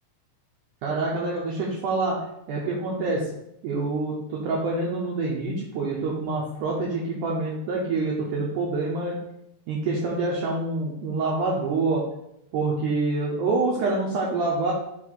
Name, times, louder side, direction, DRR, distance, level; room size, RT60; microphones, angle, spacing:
voice 1, 0.8-2.2 2.5-3.2 3.6-9.2 9.7-12.0 12.5-14.7, right 3 dB, 90° right, -4 dB, 1.7 m, -26 dB
5.4 x 4.1 x 4.5 m, 0.83 s
omnidirectional pair, 4.7 m